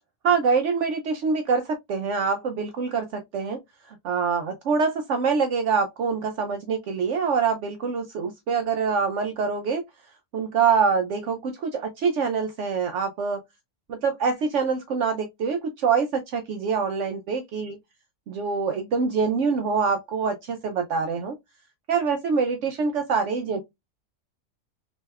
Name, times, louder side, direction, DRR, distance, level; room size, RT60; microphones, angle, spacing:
voice 1, 0.2-3.6 3.9-9.8 10.3-13.4 13.9-17.8 18.3-21.4 21.9-23.6, right 5 dB, 70° right, 0.9 m, -25 dB
3.3 x 2.7 x 3.3 m
omnidirectional pair, 1.3 m